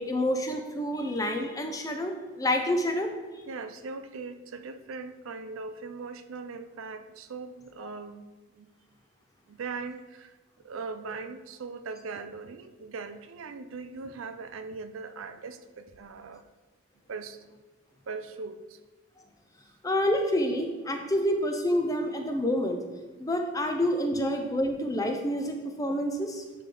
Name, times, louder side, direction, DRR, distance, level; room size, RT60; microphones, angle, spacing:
voice 1, 0.0-3.1 7.8-7.9 19.8-22.8 23.2-26.4, left 1 dB, 15° left, 0.5 m, -28 dB
voice 2, 3.5-8.7 9.5-10.4 10.6-16.4 17.1-17.4 18.1-18.8 24.1-24.2, right 4 dB, 80° right, 0.5 m, -40 dB
10.0 x 3.4 x 3.8 m
head